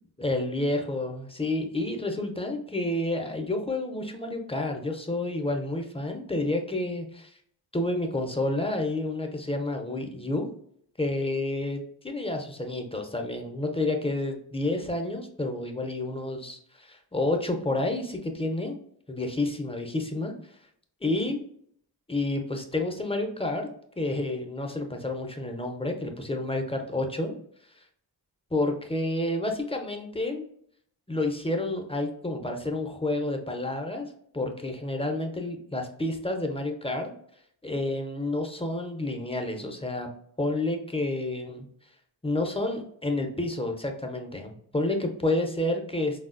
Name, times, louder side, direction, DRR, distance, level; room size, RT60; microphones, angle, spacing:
voice 1, 0.2-7.3 7.7-10.5 11.0-18.8 19.1-20.3 21.0-21.4 22.1-23.7 24.0-27.4 28.5-30.5 31.1-37.1 37.6-40.1 40.4-41.7 42.2-46.3, left 2 dB, 15° left, 3 dB, 0.5 m, -29 dB
3.7 x 2.0 x 2.4 m, 0.65 s
cardioid pair, 45°, 46 cm